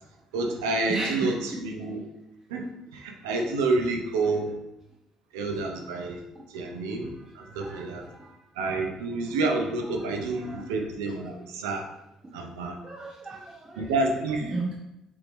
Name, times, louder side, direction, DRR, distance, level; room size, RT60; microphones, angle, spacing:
voice 1, 0.3-2.0 2.5-4.5 5.3-6.2 6.5-8.0 8.6-11.8 12.3-12.8 13.8-14.5, right 3 dB, 75° right, 2 dB, 0.5 m, -29 dB
voice 2, 0.9-1.9 7.4-8.3 8.7-8.8 10.0-10.1 10.3-10.7 11.3-11.5 12.2-12.3 12.8-13.9 14.5-14.8, right 2 dB, 20° right, -1 dB, 0.5 m, -36 dB
3.5 x 2.9 x 3.1 m, 0.89 s
figure-of-eight pair, 45°, 2 cm